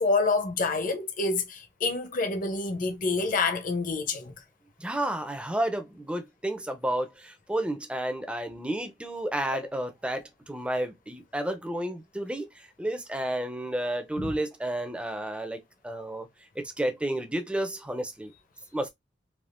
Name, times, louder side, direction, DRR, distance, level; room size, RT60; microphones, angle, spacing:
voice 1, 0.0-4.3 14.2-14.3, left 3 dB, 45° left, 0.7 m, -27 dB
voice 2, 4.8-16.3 16.6-18.3 18.7-18.9, right 1 dB, 5° right, 0.5 m, -31 dB
3.4 x 2.4 x 2.5 m
head